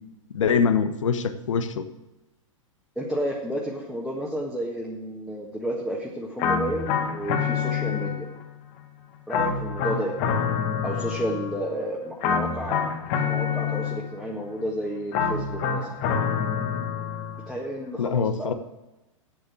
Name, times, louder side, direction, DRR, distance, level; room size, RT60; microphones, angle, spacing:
voice 1, 0.3-1.8 18.0-18.5, left 6 dB, 65° left, 10 dB, 1.2 m, -23 dB
voice 2, 2.9-8.3 9.3-10.1 10.8-12.9 13.1-15.9 17.5-18.5, equal, ahead, -3 dB, 1.6 m, -31 dB
sound 1, 6.4-8.5 9.3-11.7 12.2-14.3 15.1-17.5, left 6 dB, 40° left, 1.7 m, -27 dB
8.4 x 8.0 x 8.6 m, 0.98 s
figure-of-eight pair, 105°, 17 cm